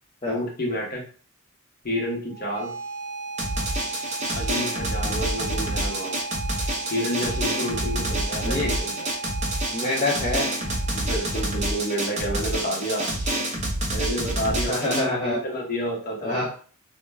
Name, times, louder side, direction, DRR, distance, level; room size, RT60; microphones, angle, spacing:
voice 1, 0.2-1.0 1.8-2.7 4.3-6.2 6.9-9.1 10.9-13.1 13.9-16.4, equal, 45° left, -1 dB, 0.9 m, -29 dB
sound 1, 2.3-13.3, right 3 dB, 90° right, 0.6 m, -37 dB
Drum, 3.4-15.0, right 1 dB, 35° right, 0.6 m, -28 dB
voice 2, 9.7-10.5 14.7-15.4 16.2-16.6, left 2 dB, 25° left, -4 dB, 0.5 m, -26 dB
2.3 x 2.2 x 3.1 m, 0.40 s
head